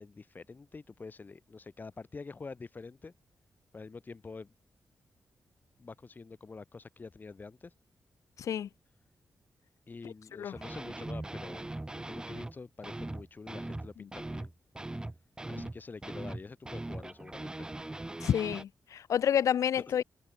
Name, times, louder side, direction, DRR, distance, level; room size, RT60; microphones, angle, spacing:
voice 1, 0.0-3.1 3.7-4.5 5.8-7.7 9.9-11.6 11.9-14.5 15.5-17.7 19.7-20.0, left 4 dB, 35° left, 1.7 m, -46 dB
voice 2, 8.4-8.7 10.4-10.5 18.2-20.0, left 9 dB, 80° left, 0.4 m, -29 dB
sound 1, 10.5-12.5 12.8-18.6, right 2 dB, 15° right, 1.2 m, -40 dB
wide cardioid pair, 105°, 5 cm